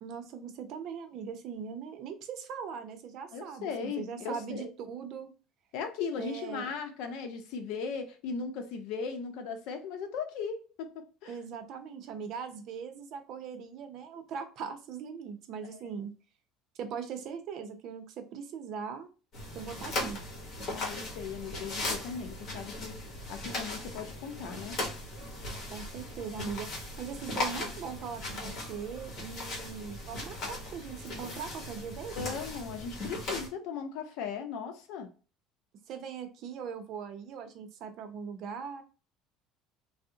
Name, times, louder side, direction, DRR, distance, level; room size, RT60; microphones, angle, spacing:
voice 1, 0.0-5.3 6.2-6.7 11.3-16.1 16.8-19.1 19.5-20.2 25.7-32.3 35.9-38.8, right 6 dB, 55° right, 0.6 m, -40 dB
voice 2, 3.3-4.7 5.7-11.4 20.7-23.0 23.3-24.8 32.1-35.1, left 5 dB, 75° left, 0.6 m, -38 dB
sound 1, 19.3-33.5, left 2 dB, 50° left, 1.2 m, -38 dB
3.4 x 2.0 x 2.7 m
cardioid pair, 125°, 0 cm